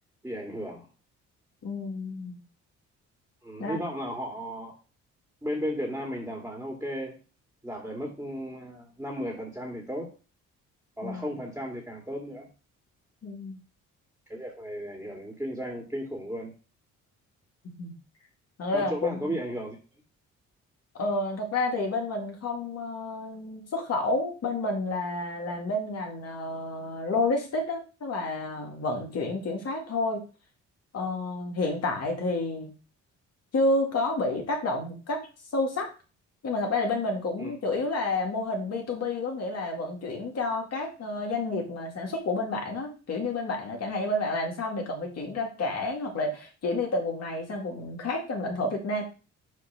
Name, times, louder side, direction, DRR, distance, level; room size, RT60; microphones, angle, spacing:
voice 1, 0.2-0.9 3.4-4.7 5.4-7.2 7.6-10.1 11.0-12.5 14.3-16.5 18.7-19.8 37.4-37.5, equal, 5° right, -1 dB, 2.0 m, -35 dB
voice 2, 1.6-2.4 3.6-3.8 11.0-11.2 13.2-13.6 17.8-17.9 18.6-19.4 20.9-30.2 30.9-32.7 33.5-35.2 35.5-35.9 36.4-49.0, left 2 dB, 55° left, 1 dB, 2.1 m, -30 dB
6.4 x 3.2 x 5.9 m, 0.33 s
cardioid pair, 90°, 30 cm